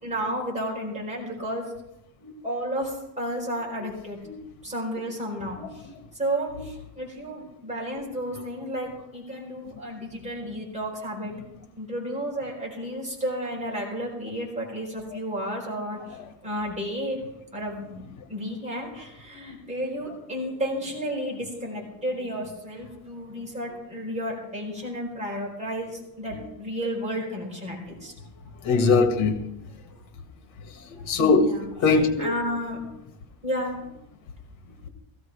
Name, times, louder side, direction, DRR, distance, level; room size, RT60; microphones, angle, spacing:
voice 1, 0.0-1.7 2.4-4.2 4.6-5.6 6.2-11.3 11.8-16.2 16.4-17.2 17.5-18.0 18.3-28.1 30.8-30.9 31.4-31.9 32.2-32.8 33.4-33.8, equal, 15° right, -2 dB, 4.3 m, -32 dB
voice 2, 28.6-29.3 31.1-31.5 31.8-32.3, left 4 dB, 75° left, 5 dB, 2.2 m, -20 dB
17.0 x 15.5 x 3.5 m, 0.84 s
cardioid pair, 170°, 48 cm